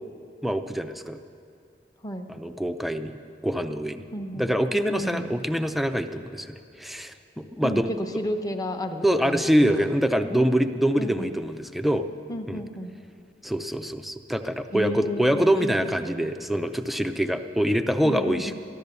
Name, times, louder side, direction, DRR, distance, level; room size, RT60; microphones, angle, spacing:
voice 1, 0.4-1.2 2.3-3.1 3.4-4.0 4.4-7.9 9.0-12.0 12.5-12.6 13.4-18.5, equal, ahead, 8 dB, 0.5 m, -25 dB
voice 2, 2.0-2.3 4.1-4.5 4.9-5.3 7.6-9.9 10.2-10.5 11.0-11.3 12.3-13.0 14.7-16.3 18.0-18.5, equal, 20° left, 5 dB, 0.9 m, -32 dB
14.0 x 12.0 x 6.9 m, 2.4 s
head